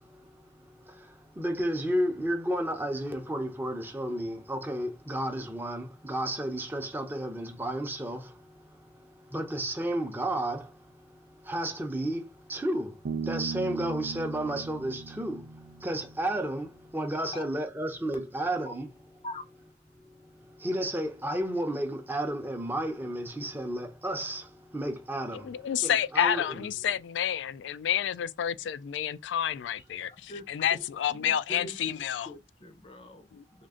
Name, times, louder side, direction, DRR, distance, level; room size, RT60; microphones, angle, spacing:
voice 1, 0.0-18.9 20.1-26.7, right 1 dB, 10° right, 0.6 m, -33 dB
Bass guitar, 13.1-16.6, right 5 dB, 70° right, 0.4 m, -38 dB
voice 2, 25.3-32.3 33.3-33.7, left 9 dB, 80° left, 0.3 m, -30 dB
voice 3, 31.1-32.0 32.3-33.7, equal, 30° left, 0.6 m, -43 dB
3.7 x 2.5 x 3.6 m
head